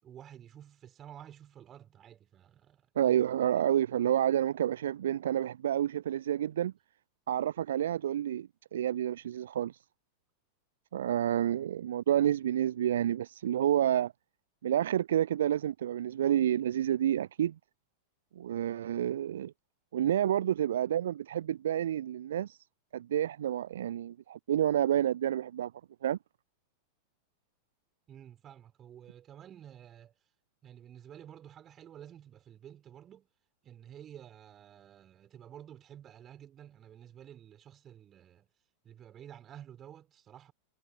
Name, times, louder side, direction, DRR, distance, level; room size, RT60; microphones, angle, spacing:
voice 1, 0.0-3.2 28.1-30.1 30.6-33.3 33.6-38.5 38.8-40.5, right 10 dB, 25° right, 6.6 m, -51 dB
voice 2, 3.0-6.7 7.3-9.8 10.9-14.1 14.6-17.5 18.4-19.5 19.9-22.6 22.9-25.7 26.0-26.2, right 11 dB, 60° right, 0.5 m, -29 dB
figure-of-eight pair, 90°, 0 cm